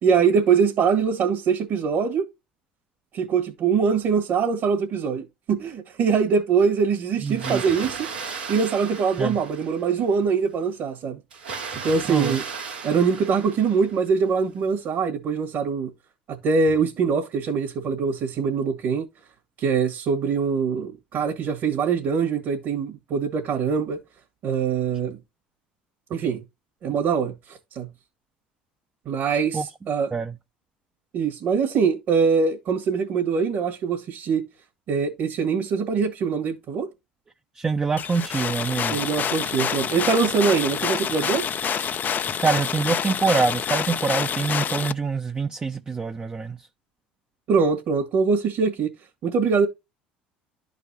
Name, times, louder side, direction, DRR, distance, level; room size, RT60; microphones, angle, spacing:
voice 1, 0.0-2.3 3.1-8.1 8.5-11.2 11.8-12.5 12.8-15.9 16.3-19.0 19.6-24.0 24.4-25.2 26.1-26.4 26.8-27.9 29.1-30.1 31.1-34.4 34.9-36.9 38.9-41.5 47.5-48.9 49.2-49.7, right 5 dB, 55° right, 1.8 m, -23 dB
voice 2, 7.2-7.6 9.2-9.4 12.1-12.4 29.5-29.6 30.1-30.3 37.6-39.0 42.4-46.6, right 4 dB, 25° right, 0.7 m, -25 dB
Water, 7.3-10.1 11.3-14.1, right 5 dB, 90° right, 1.8 m, -35 dB
sound 1, 38.0-44.9, left 8 dB, 40° left, 0.6 m, -27 dB
12.5 x 4.1 x 2.8 m
hypercardioid pair, 70°, 5 cm